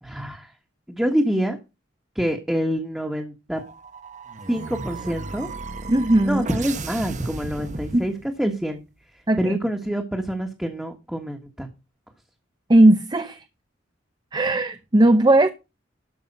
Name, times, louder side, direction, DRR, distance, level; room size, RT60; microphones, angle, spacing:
voice 1, 0.0-0.5 0.9-1.6 2.1-3.6 4.5-5.5 6.2-8.8 9.1-11.7, equal, 5° right, 1.4 m, -26 dB
sound 1, 3.5-8.6, right 3 dB, 40° right, 1.1 m, -35 dB
voice 2, 5.9-6.5 7.9-8.1 9.3-9.6 12.7-13.4 14.3-15.5, right 1 dB, 20° right, 0.7 m, -17 dB
12.5 x 5.5 x 6.8 m
head